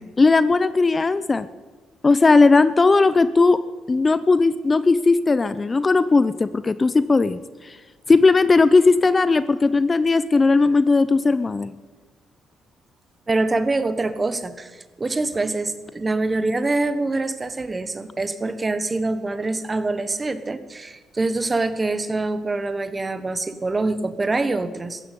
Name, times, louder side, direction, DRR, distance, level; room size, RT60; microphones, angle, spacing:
voice 1, 0.2-1.5 2.0-3.6 3.9-7.8 8.1-11.7, left 3 dB, 30° left, 15 dB, 0.6 m, -17 dB
voice 2, 13.3-25.0, right 2 dB, 25° right, 12 dB, 1.2 m, -25 dB
15.0 x 10.5 x 8.4 m, 1.3 s
cardioid pair, 90°, 0 cm